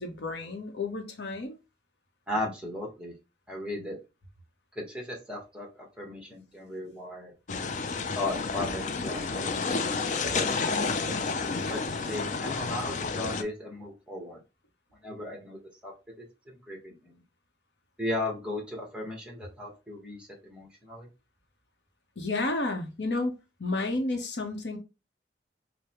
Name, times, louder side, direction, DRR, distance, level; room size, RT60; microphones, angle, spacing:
voice 1, 0.0-1.6 7.5-7.9 22.2-24.8, left 2 dB, 80° left, 0.9 m, -32 dB
voice 2, 2.3-3.1 3.5-4.0 4.7-7.3 8.1-9.5 10.3-11.2 11.5-14.4 15.0-15.9 16.5-17.2 18.0-21.1, left 1 dB, 5° right, 1.1 m, -36 dB
sound 1, 7.5-13.4, left 4 dB, 45° left, 0.4 m, -30 dB
4.8 x 2.1 x 2.9 m
head